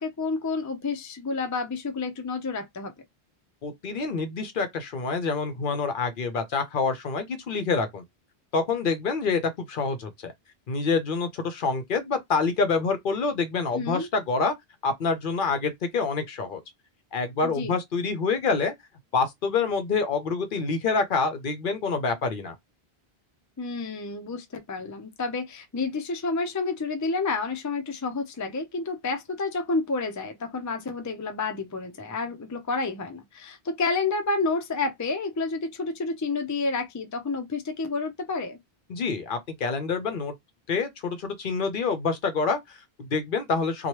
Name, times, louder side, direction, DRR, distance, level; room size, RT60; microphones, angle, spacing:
voice 1, 0.0-2.9 13.7-14.1 17.4-17.7 23.6-38.6, left 3 dB, 25° left, 0.4 m, -30 dB
voice 2, 3.6-8.0 8.5-10.3 10.7-14.5 14.8-16.6 17.1-18.7 19.1-22.5 38.9-40.3 40.7-43.9, left 4 dB, 60° left, 0.7 m, -27 dB
2.9 x 2.2 x 3.0 m
omnidirectional pair, 1.0 m